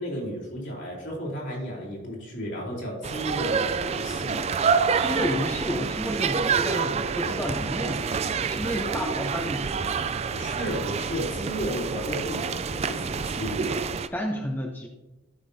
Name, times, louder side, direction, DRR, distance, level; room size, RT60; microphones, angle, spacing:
voice 1, 0.0-4.5 10.3-13.8, equal, 60° left, -3 dB, 3.0 m, -33 dB
sound 1, 3.0-14.1, right 5 dB, 30° right, 0.3 m, -27 dB
voice 2, 5.0-10.0 14.1-14.9, left 1 dB, 10° left, 1 dB, 0.6 m, -31 dB
13.0 x 5.9 x 2.7 m, 1.1 s
head